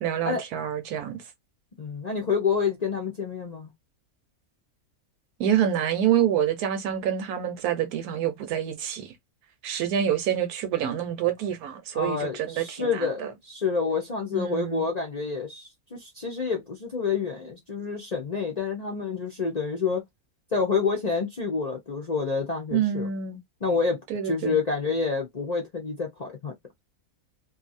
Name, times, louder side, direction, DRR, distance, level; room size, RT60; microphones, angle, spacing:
voice 1, 0.0-1.2 5.4-9.1 9.6-13.3 14.3-14.8 22.7-23.4 24.1-24.5, right 9 dB, 85° right, 1.2 m, -27 dB
voice 2, 1.8-3.7 11.9-20.0 20.5-23.1 23.6-24.0 24.2-26.5, left 5 dB, 45° left, 0.5 m, -28 dB
2.7 x 2.6 x 2.5 m
omnidirectional pair, 1.6 m